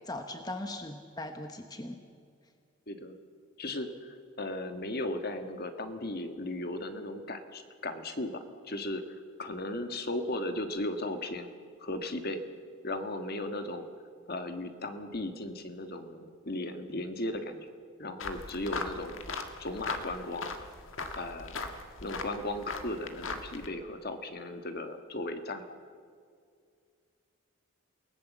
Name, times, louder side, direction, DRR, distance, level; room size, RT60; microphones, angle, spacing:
voice 1, 0.0-2.0, left 2 dB, 20° left, 6 dB, 1.0 m, -39 dB
voice 2, 2.9-3.2 3.6-8.4 8.7-9.0 9.4-11.5 11.8-12.4 12.8-13.9 14.3-17.7 18.0-19.2 19.6-20.5 21.2-21.6 22.0-25.6, left 1 dB, 45° left, 7 dB, 1.5 m, -36 dB
sound 1, 18.2-23.7, left 3 dB, 60° left, 1.7 m, -39 dB
28.5 x 18.0 x 7.3 m, 2.3 s
head